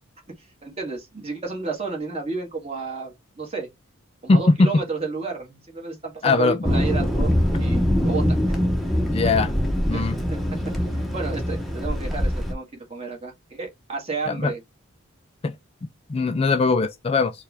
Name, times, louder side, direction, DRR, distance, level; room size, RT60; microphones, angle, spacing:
voice 1, 0.4-3.7 4.2-7.3 7.6-8.6 9.9-10.2 10.9-14.6, right 4 dB, 30° right, 1.6 m, -32 dB
voice 2, 4.3-4.7 6.2-6.6 9.0-9.5 9.9-10.1 14.3-14.5 15.4-15.5 16.1-17.3, left 3 dB, 30° left, 0.3 m, -20 dB
Thunder, 6.6-12.5, equal, ahead, 0.8 m, -23 dB
4.6 x 2.4 x 3.3 m
head